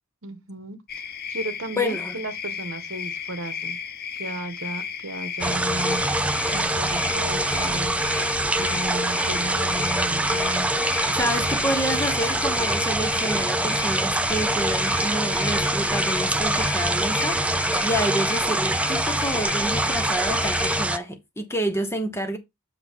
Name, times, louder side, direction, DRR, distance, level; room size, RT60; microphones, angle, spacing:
voice 1, 0.2-0.8 1.0-3.8 4.2-6.0 6.5-7.9 8.6-10.7, right 2 dB, 60° right, 1.2 m, -34 dB
sound 1, 0.9-20.8, left 7 dB, 45° left, 0.8 m, -34 dB
voice 2, 1.8-2.2 11.2-17.4 17.8-22.4, equal, 10° left, 1.0 m, -28 dB
sound 2, 5.4-21.0, right 1 dB, 5° right, 0.3 m, -24 dB
8.1 x 5.8 x 3.6 m
head